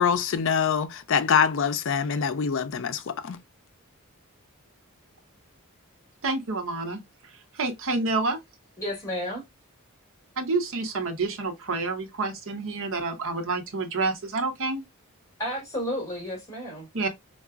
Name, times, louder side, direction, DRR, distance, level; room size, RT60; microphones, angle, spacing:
voice 1, 0.0-3.4, left 7 dB, 60° left, 0.5 m, -24 dB
voice 2, 6.2-7.0 7.6-8.4 10.4-14.8 16.9-17.1, right 3 dB, 65° right, 0.8 m, -28 dB
voice 3, 8.8-9.4 15.4-16.9, equal, 15° left, 2.1 m, -32 dB
4.6 x 2.3 x 2.4 m
head